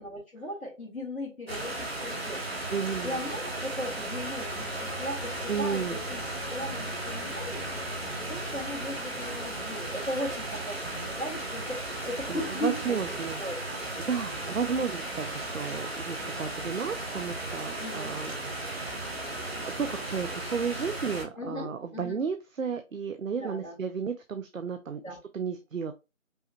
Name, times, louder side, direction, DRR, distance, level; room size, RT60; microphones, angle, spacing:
voice 1, 0.0-2.6 3.0-13.0 13.4-13.8 17.8-18.1 21.4-22.2 23.4-23.8 25.0-25.2, equal, 85° left, 2.0 m, -37 dB
sound 1, 1.5-21.2, right 2 dB, 50° right, 1.1 m, -35 dB
voice 2, 2.7-3.2 5.5-6.0 12.3-13.4 14.1-18.3 18.7-25.9, right 6 dB, 75° right, 0.6 m, -33 dB
Bowed string instrument, 4.1-9.5, left 2 dB, 65° left, 2.3 m, -44 dB
5.4 x 2.2 x 2.9 m
figure-of-eight pair, 165°, 40 cm